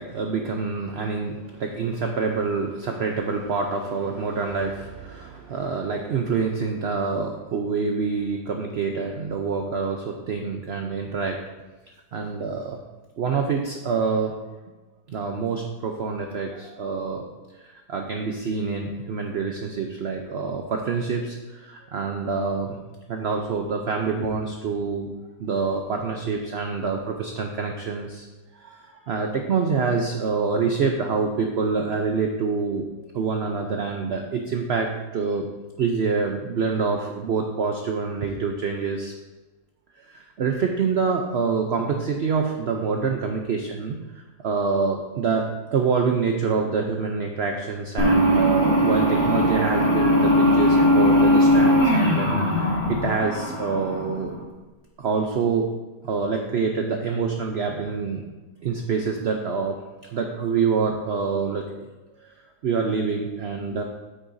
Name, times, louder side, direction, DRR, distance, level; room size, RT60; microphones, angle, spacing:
voice 1, 0.0-11.4 12.1-12.8 13.2-14.3 15.1-17.2 17.9-22.8 23.1-25.1 25.4-28.3 28.6-32.9 33.1-35.5 35.8-39.1 40.1-54.3 55.0-55.7 56.0-58.2 58.6-59.8 60.1-61.9 62.6-63.8, right 5 dB, 65° right, 3 dB, 0.6 m, -26 dB
sound 1, 48.0-54.3, equal, 40° left, 2.2 m, -19 dB
8.7 x 8.7 x 2.6 m, 1.2 s
omnidirectional pair, 1.9 m